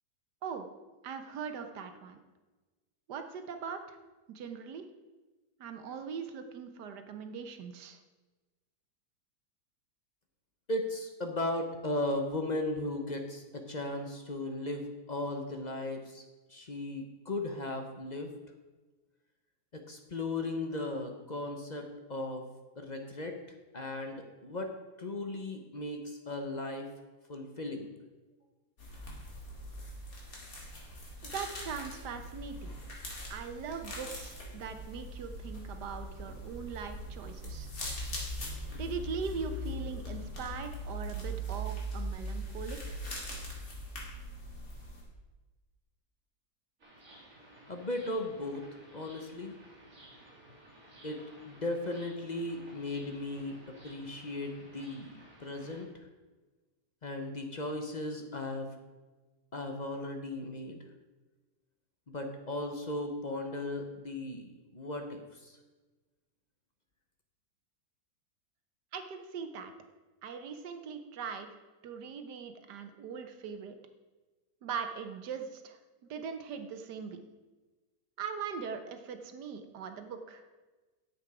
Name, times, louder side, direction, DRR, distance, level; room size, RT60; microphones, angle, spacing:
voice 1, 1.0-2.2 3.1-4.0 4.3-4.8 5.6-8.0 31.2-32.7 33.3-37.7 38.7-43.0 68.9-69.7 70.2-71.5 71.8-73.7 74.6-75.8 76.1-77.2 78.2-80.4, right 6 dB, 80° right, 7 dB, 1.5 m, -40 dB
voice 2, 10.7-16.2 16.5-18.3 19.7-21.8 22.1-22.4 22.8-23.4 23.7-24.7 25.0-26.9 27.3-27.9 47.7-48.6 48.9-49.6 51.0-51.2 51.4-53.6 53.8-55.1 55.4-55.9 57.0-58.7 59.5-60.8 62.1-65.5, left 2 dB, 35° left, 4 dB, 0.8 m, -36 dB
sound 1, 28.8-45.0, equal, 60° left, 2.9 m, -41 dB
sound 2, 46.8-55.8, right 1 dB, 55° right, 3.7 m, -55 dB
9.8 x 8.0 x 4.8 m, 1.2 s
omnidirectional pair, 1.7 m